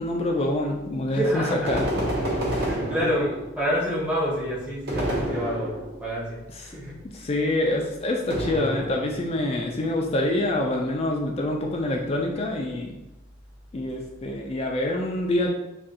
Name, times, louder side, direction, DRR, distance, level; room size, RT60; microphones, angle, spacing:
voice 1, 0.0-1.8 2.5-2.6 3.0-3.3 7.1-13.0 13.7-15.5, left 1 dB, 30° left, 1 dB, 0.3 m, -26 dB
voice 2, 1.1-1.8 2.5-7.0, equal, 5° right, -7 dB, 0.8 m, -28 dB
sound 1, 1.7-3.6 4.9-6.1 8.3-9.3, equal, 50° right, 0.8 m, -28 dB
2.6 x 2.3 x 3.6 m, 0.96 s
head